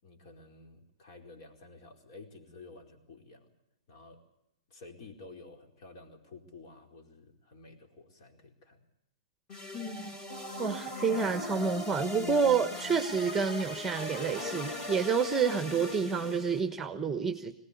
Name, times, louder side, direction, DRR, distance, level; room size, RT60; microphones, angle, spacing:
voice 1, 0.0-3.5 3.9-4.2 4.7-8.8, left 3 dB, 50° left, 4 dB, 4.5 m, -52 dB
sound 1, 9.5-16.6, left 1 dB, 25° left, 4.4 m, -39 dB
voice 2, 9.7-10.2 10.6-17.5, right 5 dB, 10° right, 8 dB, 1.3 m, -29 dB
22.0 x 18.5 x 8.4 m, 0.85 s
hypercardioid pair, 120°, 3 cm